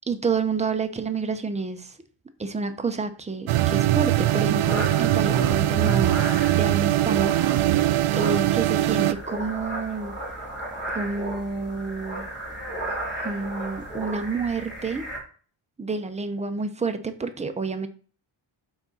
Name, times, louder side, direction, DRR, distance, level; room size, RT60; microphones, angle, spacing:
voice 1, 0.1-2.0 2.4-7.3 7.6-10.1 10.9-12.3 13.2-15.0 15.8-17.9, right 4 dB, 15° right, 7 dB, 0.4 m, -29 dB
sound 1, 3.5-9.1, right 14 dB, 80° right, 0.5 m, -21 dB
sound 2, 4.4-15.2, right 1 dB, 20° left, 2.4 m, -35 dB
5.8 x 4.0 x 4.2 m, 0.41 s
wide cardioid pair, 160°, 49 cm